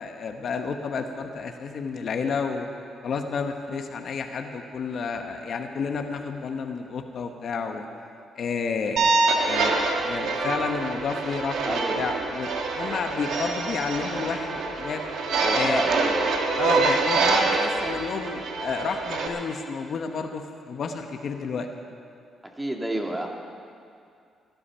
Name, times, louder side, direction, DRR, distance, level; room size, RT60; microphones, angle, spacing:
voice 1, 0.0-2.7 3.0-7.9 8.3-12.5 12.8-15.0 15.5-15.8 16.6-21.7, left 5 dB, 60° left, 5 dB, 1.2 m, -31 dB
sound 1, 9.0-19.3, right 3 dB, 75° right, 1.8 m, -25 dB
voice 2, 11.6-12.0 15.4-16.3 22.6-23.3, right 1 dB, 15° right, 1 dB, 2.1 m, -29 dB
18.0 x 12.0 x 5.7 m, 2.4 s
cardioid pair, 90°, 0 cm